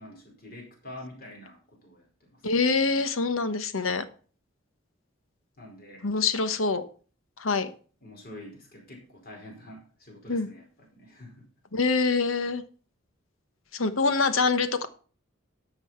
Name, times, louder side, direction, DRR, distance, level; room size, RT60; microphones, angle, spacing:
voice 1, 0.0-2.5 5.6-6.0 8.0-11.5, left 1 dB, 45° left, 0 dB, 4.8 m, -46 dB
voice 2, 2.4-4.1 6.0-6.8 7.4-7.7 10.3-10.5 11.7-12.6 13.7-14.9, left 4 dB, 90° left, 11 dB, 1.2 m, -25 dB
13.5 x 5.7 x 5.8 m, 0.41 s
head